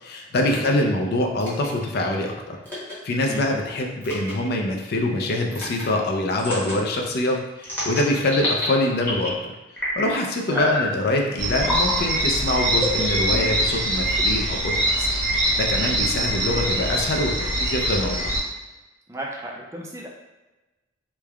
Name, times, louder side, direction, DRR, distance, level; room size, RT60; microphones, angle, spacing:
voice 1, 0.0-2.6 3.0-9.3 10.0-14.7 15.0-15.1 15.5-18.2, left 1 dB, 55° left, 1 dB, 0.4 m, -24 dB
sound 1, 1.4-1.7 2.6-2.9 4.0-4.3 5.5-5.8 6.4-6.7 7.6-8.6 9.0-9.4 9.8-10.1 10.5-10.9 11.6-11.9 12.8-13.7, left 1 dB, 10° left, 0.9 m, -28 dB
sound 2, 11.4-18.4, right 1 dB, 80° right, 1.0 m, -23 dB
voice 2, 19.1-20.1, right 1 dB, 15° right, -2 dB, 0.4 m, -34 dB
3.2 x 2.1 x 2.3 m, 1.1 s
head